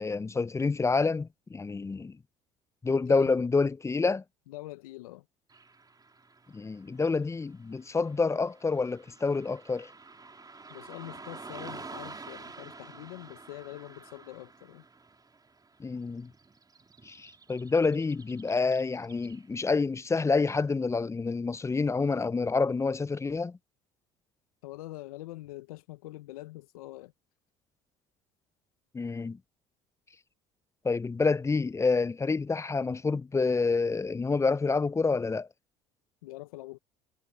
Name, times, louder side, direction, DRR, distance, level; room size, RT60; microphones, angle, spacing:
voice 1, 0.0-2.2 2.8-4.2 6.5-9.9 15.8-16.3 17.0-23.6 28.9-29.4 30.8-35.5, left 4 dB, 15° left, 0.5 m, -28 dB
voice 2, 4.5-5.3 10.7-14.8 24.6-27.1 36.2-36.8, left 18 dB, 85° left, 0.9 m, -44 dB
Car passing by / Traffic noise roadway noise, 5.5-19.8, right 4 dB, 20° right, 3.9 m, -49 dB
hypercardioid pair, 70°, 18 cm